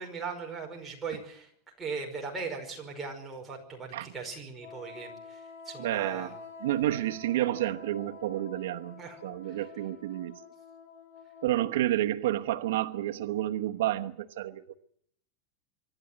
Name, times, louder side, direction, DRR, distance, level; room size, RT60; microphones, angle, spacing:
voice 1, 0.0-1.5 1.8-6.3 9.0-9.2 9.5-9.6, right 4 dB, 10° right, -1 dB, 5.2 m, -39 dB
Wind instrument woodwind instrument, 4.6-11.9, left 5 dB, 85° left, 2.6 m, -48 dB
voice 2, 5.8-6.4 6.6-10.4 11.4-14.8, right 14 dB, 90° right, 7 dB, 1.0 m, -30 dB
25.0 x 12.0 x 9.4 m, 0.68 s
supercardioid pair, 160°, 0 cm